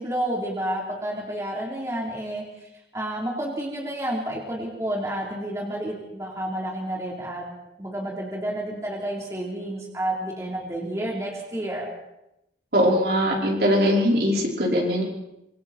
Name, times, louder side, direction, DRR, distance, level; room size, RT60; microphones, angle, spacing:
voice 1, 0.0-7.4 7.8-11.9, right 1 dB, 15° right, -2 dB, 3.9 m, -30 dB
voice 2, 12.7-15.0, equal, 60° right, -1 dB, 5.2 m, -21 dB
26.0 x 24.5 x 4.5 m, 0.87 s
head